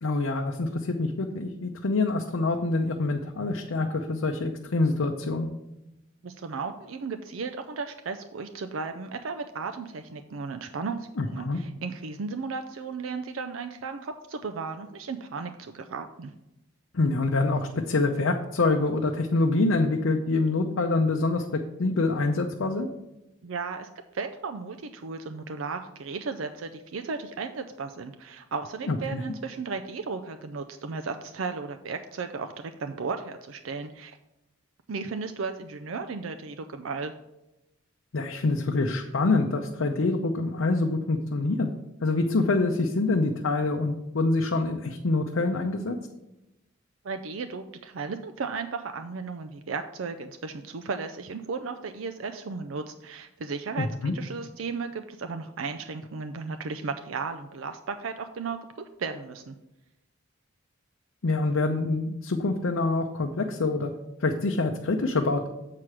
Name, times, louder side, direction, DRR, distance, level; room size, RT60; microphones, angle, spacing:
voice 1, 0.0-5.5 11.2-11.6 16.9-22.9 28.9-29.2 38.1-41.7 42.0-46.0 53.8-54.1 61.2-63.9 64.2-65.5, left 3 dB, 80° left, 3 dB, 0.6 m, -26 dB
voice 2, 6.2-16.3 23.4-34.2 34.9-37.1 47.0-53.9 54.1-59.6, right 4 dB, 75° right, 7 dB, 0.5 m, -35 dB
7.6 x 4.8 x 5.9 m, 0.94 s
head